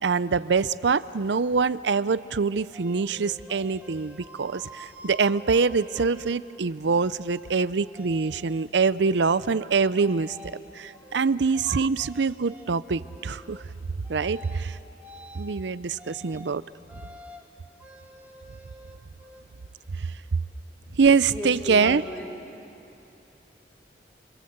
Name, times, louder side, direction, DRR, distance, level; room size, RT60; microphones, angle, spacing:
voice 1, 0.0-10.4 10.7-13.6 14.1-14.8 15.3-16.6 20.0-20.1 21.0-22.0, right 5 dB, 80° right, 16 dB, 0.6 m, -24 dB
sound 1, 2.7-6.3 6.8-7.6 7.9-8.7 9.0-9.6 10.0-10.6 11.0-12.2 12.5-12.7 13.0-13.6 14.0-14.6 15.0-15.5 16.0-16.5 16.9-17.5 17.8-19.4, equal, 10° right, 1.6 m, -48 dB
voice 2, 10.9-11.3 21.3-22.4 22.7-23.0, left 1 dB, 10° left, -1 dB, 2.5 m, -37 dB
28.5 x 26.0 x 8.0 m, 2.9 s
head